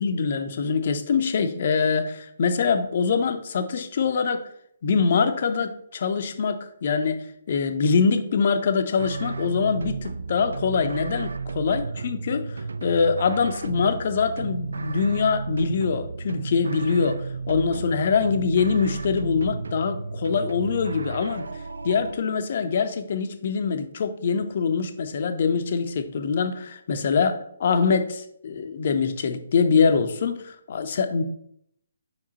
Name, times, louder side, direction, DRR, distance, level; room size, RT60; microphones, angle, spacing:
voice 1, 0.0-4.4 4.8-21.5 21.8-31.2, left 5 dB, 45° left, 8 dB, 0.7 m, -24 dB
sound 1, 9.0-22.1, right 4 dB, 60° right, 0.4 m, -33 dB
5.3 x 4.9 x 4.0 m, 0.68 s
figure-of-eight pair, 135°, 0 cm